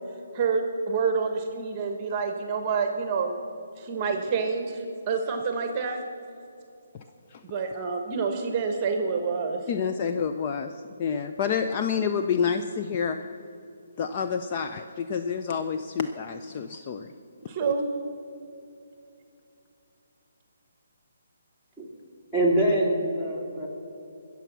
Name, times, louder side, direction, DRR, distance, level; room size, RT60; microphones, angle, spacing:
voice 1, 0.3-3.4 3.8-6.0 7.5-9.6 17.5-17.8, right 5 dB, 25° right, 5 dB, 1.1 m, -27 dB
voice 2, 9.7-10.7 11.0-13.2 14.0-17.1 17.6-17.7, left 6 dB, 30° left, 7 dB, 0.5 m, -28 dB
voice 3, 22.3-23.7, right 1 dB, 10° left, -4 dB, 2.8 m, -24 dB
20.5 x 7.1 x 6.1 m, 2.7 s
hypercardioid pair, 160°, 0 cm